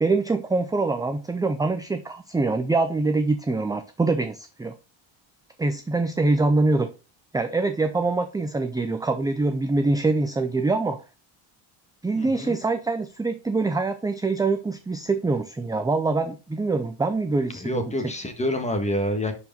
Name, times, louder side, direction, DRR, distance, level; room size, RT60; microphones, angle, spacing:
voice 1, 0.0-4.7 5.6-6.9 7.3-11.0 12.0-18.1, right 3 dB, 10° right, 0.3 m, -24 dB
voice 2, 12.1-12.6 17.6-19.3, left 1 dB, 15° left, 1.4 m, -27 dB
10.5 x 4.9 x 3.8 m
cardioid pair, 175°, 50 cm